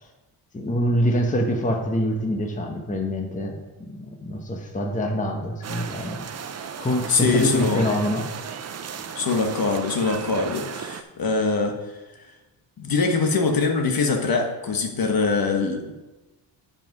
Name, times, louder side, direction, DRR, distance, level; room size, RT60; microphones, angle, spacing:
voice 1, 0.5-3.6 3.9-8.3, equal, 15° left, 2 dB, 1.1 m, -25 dB
sound 1, 5.6-11.0, right 7 dB, 35° right, 0.5 m, -35 dB
voice 2, 7.1-7.9 9.1-11.7 12.8-15.9, left 4 dB, 45° left, 4 dB, 1.4 m, -23 dB
9.1 x 5.4 x 5.3 m, 1.1 s
cardioid pair, 105°, 49 cm